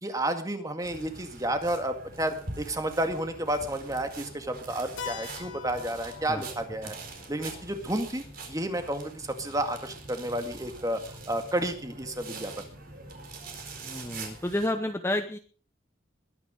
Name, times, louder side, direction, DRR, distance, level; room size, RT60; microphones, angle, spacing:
voice 1, 0.0-7.0 7.3-12.7, right 1 dB, 20° right, 6 dB, 2.0 m, -31 dB
sound 1, 0.8-14.7, right 3 dB, 50° right, 4.3 m, -44 dB
Keyboard (musical), 5.0-9.4, left 8 dB, 85° left, 2.4 m, -45 dB
voice 2, 13.8-15.4, left 1 dB, 15° left, 7 dB, 0.9 m, -30 dB
21.5 x 9.9 x 5.2 m, 0.41 s
head